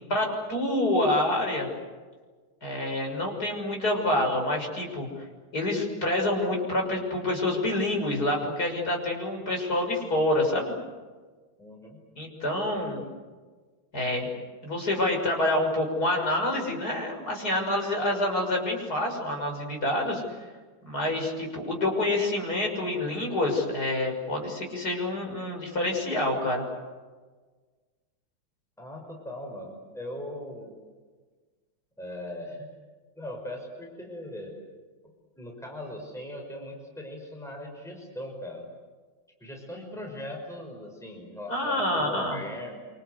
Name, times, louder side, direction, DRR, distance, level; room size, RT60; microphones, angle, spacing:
voice 1, 0.1-1.7 2.6-5.1 5.5-10.7 12.2-13.0 13.9-14.3 14.6-20.2 20.8-26.7 41.5-42.4, left 1 dB, 50° left, 1 dB, 6.9 m, -27 dB
voice 2, 11.6-12.0 12.7-12.9 28.8-30.8 32.0-32.7 33.2-34.6 35.4-38.7 39.4-42.8, left 1 dB, ahead, 1 dB, 5.8 m, -39 dB
27.0 x 27.0 x 8.2 m, 1.4 s
omnidirectional pair, 2.2 m